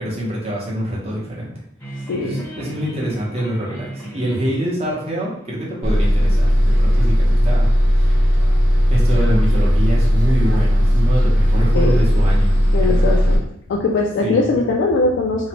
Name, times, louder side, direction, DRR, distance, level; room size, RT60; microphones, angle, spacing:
voice 1, 0.0-1.5 1.9-7.7 7.9-8.4 8.9-12.6 12.8-13.0 14.2-14.6, equal, 30° right, -4 dB, 0.8 m, -25 dB
sound 1, 1.8-6.8, right 1 dB, 10° left, 0.7 m, -37 dB
voice 2, 2.1-2.5 11.7-12.0 12.7-13.4 13.7-15.5, left 3 dB, 60° left, -1 dB, 0.3 m, -20 dB
Bus, 5.8-13.4, equal, 65° right, 0.8 m, -16 dB
2.8 x 2.1 x 2.8 m, 0.69 s
head